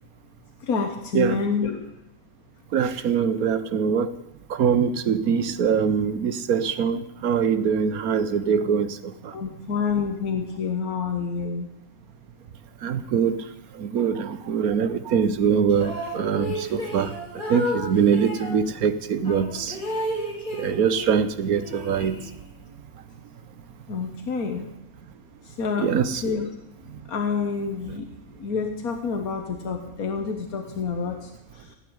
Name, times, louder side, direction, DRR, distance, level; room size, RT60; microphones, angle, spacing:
voice 1, 0.6-1.8 9.3-11.7 23.9-24.7 25.4-26.5 27.1-28.1 28.4-31.8, left 5 dB, 85° left, 4 dB, 1.7 m, -28 dB
voice 2, 2.7-4.1 4.5-9.3 12.8-13.4 13.8-17.1 17.5-19.8 20.5-22.2 25.8-26.1, right 7 dB, 85° right, 13 dB, 1.4 m, -23 dB
sound 1, 15.7-18.6 19.2-21.2 21.5-22.6, equal, 35° left, 4.2 m, -32 dB
16.0 x 8.3 x 9.4 m, 0.82 s
omnidirectional pair, 1.5 m